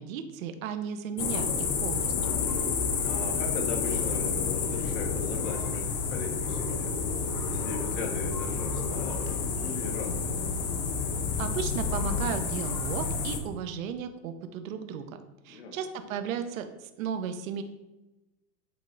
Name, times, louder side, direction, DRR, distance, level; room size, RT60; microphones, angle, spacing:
voice 1, 0.0-2.4 11.4-15.2 15.4-17.6, right 7 dB, 70° right, 8 dB, 0.8 m, -35 dB
sound 1, 1.2-13.4, left 5 dB, 35° left, 0.5 m, -30 dB
voice 2, 3.0-5.8 6.1-6.9 7.4-10.4 15.4-15.8, left 4 dB, 55° left, 2 dB, 1.4 m, -38 dB
7.9 x 3.2 x 3.9 m, 1.0 s
supercardioid pair, 180°, 41 cm